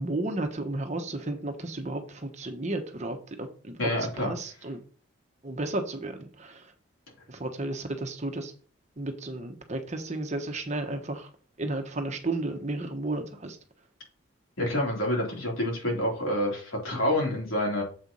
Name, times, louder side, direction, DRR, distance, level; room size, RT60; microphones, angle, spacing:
voice 1, 0.0-3.8 4.2-4.8 5.4-6.7 7.3-8.5 9.0-11.3 11.6-13.6, right 2 dB, 35° right, 6 dB, 1.0 m, -33 dB
voice 2, 3.8-4.3 14.6-17.8, left 1 dB, 80° left, -2 dB, 3.6 m, -28 dB
7.4 x 4.4 x 5.4 m, 0.42 s
head